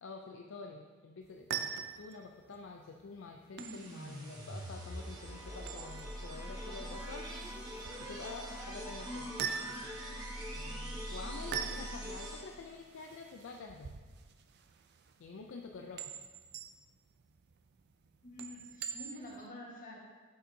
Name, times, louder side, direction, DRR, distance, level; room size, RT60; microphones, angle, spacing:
voice 1, 0.0-7.3 8.0-9.3 10.6-13.9 15.2-16.0, left 4 dB, 60° left, 2 dB, 0.4 m, -48 dB
sound 1, 1.2-19.5, right 7 dB, 50° right, 0.4 m, -45 dB
sound 2, 3.6-12.7, equal, 20° right, 1.1 m, -43 dB
voice 2, 9.1-9.4 18.2-20.0, left 1 dB, 40° left, -3 dB, 1.5 m, -47 dB
8.8 x 6.4 x 2.7 m, 1.4 s
head